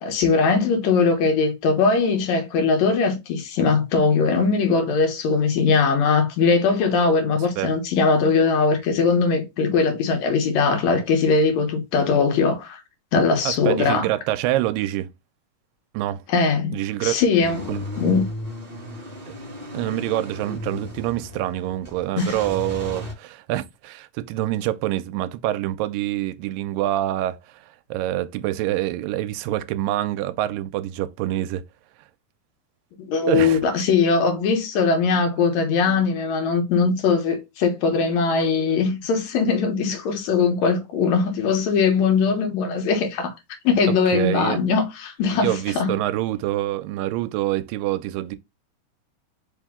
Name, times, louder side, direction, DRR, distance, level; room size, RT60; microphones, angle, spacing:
voice 1, 0.0-12.8 13.1-14.1 16.3-17.6 18.0-18.3 22.2-22.4 33.1-43.3 43.6-46.0, left 4 dB, 65° left, 2.0 m, -20 dB
voice 2, 13.5-15.1 15.9-16.2 16.7-17.2 17.7-17.8 19.3-19.4 19.7-27.7 27.9-31.6 33.3-33.6 43.9-44.6 45.3-48.4, right 14 dB, 85° right, 2.2 m, -26 dB
Car / Engine starting / Idling, 17.4-23.1, left 1 dB, 40° right, 0.6 m, -35 dB
5.1 x 2.7 x 3.6 m
omnidirectional pair, 3.9 m